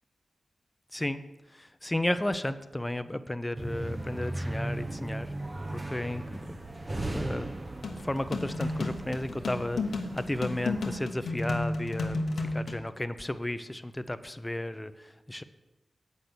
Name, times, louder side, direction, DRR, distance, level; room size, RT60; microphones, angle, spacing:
voice 1, 0.9-1.2 1.5-5.3 5.7-6.6 7.1-7.5 8.0-15.4, left 1 dB, 15° left, 12 dB, 0.6 m, -33 dB
sound 1, 3.6-11.0, right 1 dB, 35° right, 1.0 m, -37 dB
sound 2, 7.8-12.8, left 2 dB, 90° left, 0.9 m, -32 dB
8.3 x 5.9 x 6.8 m, 1.1 s
cardioid pair, 55°, 0 cm